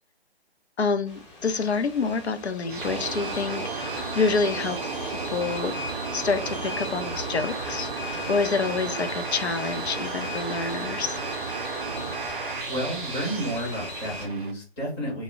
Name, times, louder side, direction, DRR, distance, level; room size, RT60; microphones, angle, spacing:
voice 1, 0.8-4.8 5.3-5.7 6.1-7.9 8.3-11.2, left 4 dB, 85° left, 8 dB, 0.5 m, -27 dB
sound 1, 1.1-14.3, left 1 dB, 30° left, 0.9 m, -38 dB
sound 2, 2.7-14.5, right 4 dB, 55° right, 0.5 m, -33 dB
voice 2, 12.2-15.2, right 1 dB, 10° left, -7 dB, 0.6 m, -32 dB
2.1 x 2.0 x 3.6 m, 0.35 s
figure-of-eight pair, 140°, 32 cm